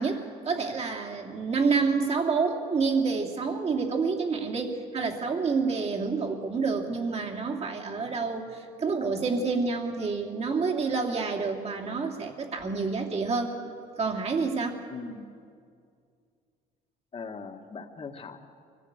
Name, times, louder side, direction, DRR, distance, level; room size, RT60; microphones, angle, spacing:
voice 1, 0.0-13.5 14.0-14.8, right 4 dB, 40° right, 1 dB, 2.8 m, -28 dB
voice 2, 14.9-15.3 17.1-18.4, left 5 dB, 35° left, 5 dB, 1.9 m, -40 dB
24.0 x 17.0 x 8.2 m, 2.3 s
cardioid pair, 110°, 17 cm